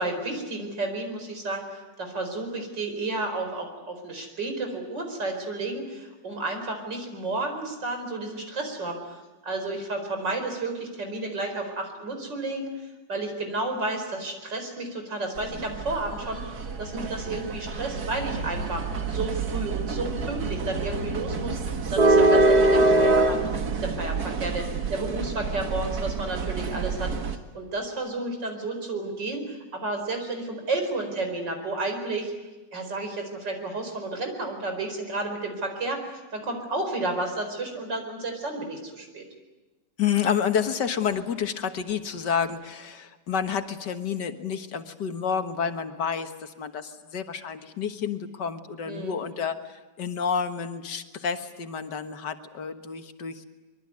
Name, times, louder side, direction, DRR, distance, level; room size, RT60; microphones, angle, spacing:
voice 1, 0.0-12.7 13.1-23.5 23.8-27.1 27.5-32.3 32.7-36.0 36.3-39.3 48.9-49.2, right 2 dB, 85° right, 5 dB, 5.3 m, -32 dB
sound 1, 15.4-27.3, right 2 dB, 60° right, 2.1 m, -25 dB
voice 2, 40.0-53.4, left 7 dB, 75° left, 8 dB, 2.1 m, -29 dB
24.5 x 22.5 x 9.7 m, 1.1 s
omnidirectional pair, 1.9 m